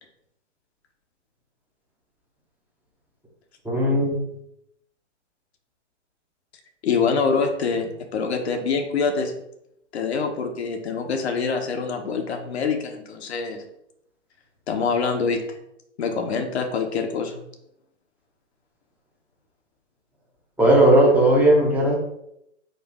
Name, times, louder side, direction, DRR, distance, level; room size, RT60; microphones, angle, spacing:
voice 1, 3.6-4.2 20.6-21.9, right 1 dB, 5° right, -3 dB, 0.8 m, -17 dB
voice 2, 6.8-9.3 9.9-13.6 14.7-15.6 16.0-17.4, left 5 dB, 60° left, 5 dB, 0.9 m, -25 dB
4.4 x 2.5 x 4.5 m, 0.77 s
figure-of-eight pair, 115°, 37 cm